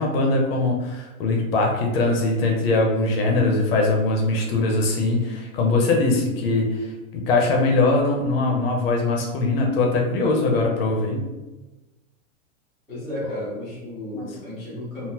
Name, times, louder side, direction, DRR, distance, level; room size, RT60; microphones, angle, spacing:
voice 1, 0.0-6.9 7.1-11.3 14.1-14.2, left 2 dB, 45° left, 1 dB, 0.6 m, -21 dB
voice 2, 12.9-15.1, left 1 dB, ahead, -18 dB, 0.4 m, -33 dB
3.7 x 2.0 x 2.8 m, 1.1 s
supercardioid pair, 160°, 41 cm